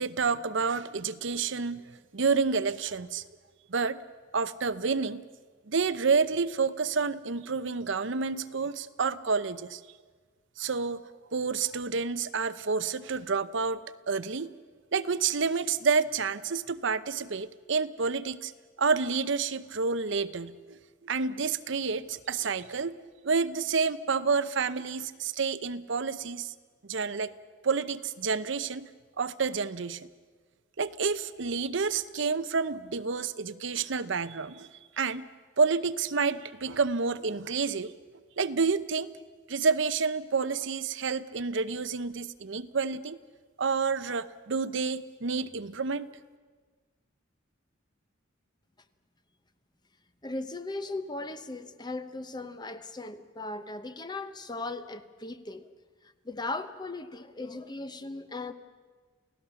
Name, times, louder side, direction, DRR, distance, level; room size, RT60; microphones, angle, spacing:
voice 1, 0.0-1.8 2.1-3.2 3.7-4.0 4.3-5.2 5.7-9.8 10.6-11.0 11.3-13.8 14.1-14.5 14.9-18.5 18.8-20.8 21.0-23.0 23.2-26.5 26.9-27.3 27.6-28.9 29.2-30.1 30.8-34.7 35.0-35.3 35.6-37.9 38.4-39.1 39.5-43.2 43.6-46.1, right 5 dB, 65° right, 13 dB, 0.8 m, -29 dB
voice 2, 50.2-55.7 56.2-58.5, left 2 dB, 20° left, 11 dB, 0.9 m, -38 dB
29.5 x 17.0 x 7.0 m, 1.5 s
head